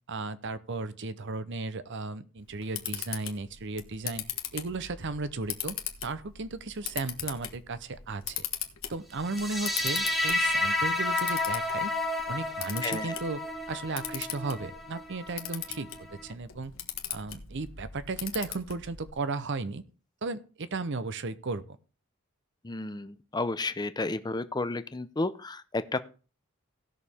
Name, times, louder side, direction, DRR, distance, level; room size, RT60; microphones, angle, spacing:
voice 1, 0.1-4.3 4.5-5.8 6.0-8.4 8.9-11.9 12.3-13.4 13.7-15.9 16.2-16.7 17.1-19.8 20.2-21.8, right 3 dB, 60° right, 14 dB, 0.7 m, -35 dB
Camera, 2.4-19.1, left 11 dB, 70° left, 1.4 m, -40 dB
sound 1, 9.3-16.3, left 2 dB, ahead, 1.8 m, -31 dB
voice 2, 12.8-13.1 22.6-26.0, left 2 dB, 20° left, 12 dB, 0.6 m, -32 dB
17.0 x 6.5 x 3.5 m, 0.36 s
head